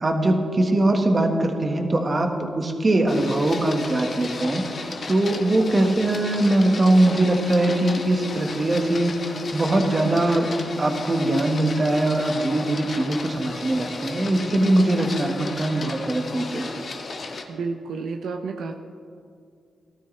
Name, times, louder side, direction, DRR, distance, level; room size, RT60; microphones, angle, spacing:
voice 1, 0.0-4.6 5.1-10.5 10.8-16.7, right 1 dB, 30° right, 3 dB, 1.5 m, -21 dB
Printer, 3.1-17.4, left 3 dB, 50° left, 1.2 m, -34 dB
voice 2, 17.5-18.7, right 4 dB, 80° right, 4 dB, 0.7 m, -30 dB
18.0 x 12.5 x 3.3 m, 2.3 s
cardioid pair, 90°, 0 cm